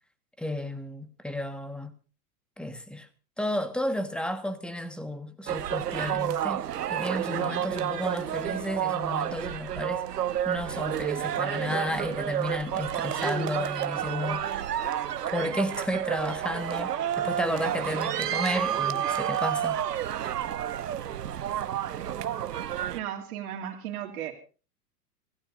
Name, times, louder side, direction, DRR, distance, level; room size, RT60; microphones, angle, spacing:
voice 1, 0.4-1.9 2.6-3.1 3.4-6.6 6.9-10.1 10.4-14.6 15.3-19.8, left 1 dB, ahead, 1.5 m, -32 dB
sound 1, 5.5-23.0, right 10 dB, 80° right, 1.0 m, -30 dB
voice 2, 22.9-24.3, right 10 dB, 65° right, 2.9 m, -35 dB
25.5 x 15.5 x 2.7 m
hypercardioid pair, 100°, 47 cm